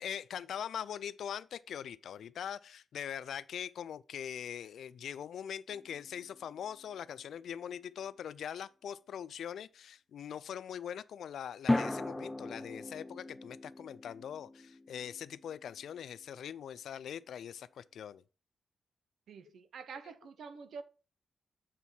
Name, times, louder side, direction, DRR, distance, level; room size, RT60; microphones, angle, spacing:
voice 1, 0.0-18.2 19.5-19.6, left 9 dB, 85° left, 0.3 m, -42 dB
sound 1, 5.7-6.8 11.7-16.0, left 2 dB, 10° left, 0.4 m, -37 dB
voice 2, 19.3-20.8, right 5 dB, 75° right, 0.6 m, -47 dB
7.4 x 4.1 x 4.5 m
wide cardioid pair, 135°, 0 cm